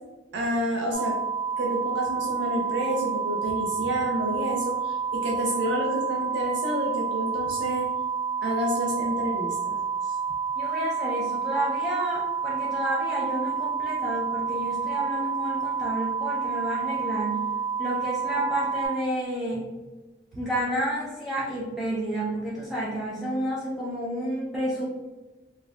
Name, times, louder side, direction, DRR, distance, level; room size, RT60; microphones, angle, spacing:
voice 1, 0.3-1.2 1.6-7.9 8.4-9.8 10.0-10.1, right 1 dB, 80° right, -2 dB, 0.5 m, -29 dB
sound 1, 0.9-18.9, right 6 dB, 50° left, 0.6 m, -29 dB
voice 2, 10.6-17.5 17.8-19.6 20.4-24.9, equal, ahead, -8 dB, 0.5 m, -30 dB
4.3 x 2.3 x 2.3 m, 1.2 s
head